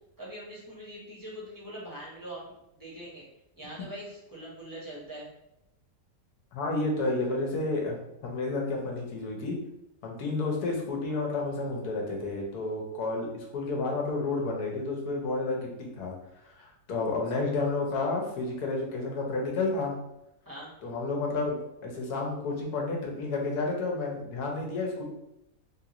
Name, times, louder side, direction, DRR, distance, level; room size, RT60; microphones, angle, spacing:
voice 1, 0.2-3.2 3.6-5.3 20.4-20.7, right 1 dB, 15° right, -6 dB, 0.7 m, -42 dB
voice 2, 6.5-8.0 8.2-9.6 10.0-15.7 16.0-16.1 16.6-19.9 20.8-25.0, left 3 dB, 70° left, 0 dB, 1.2 m, -31 dB
3.5 x 2.5 x 2.9 m, 0.84 s
omnidirectional pair, 1.8 m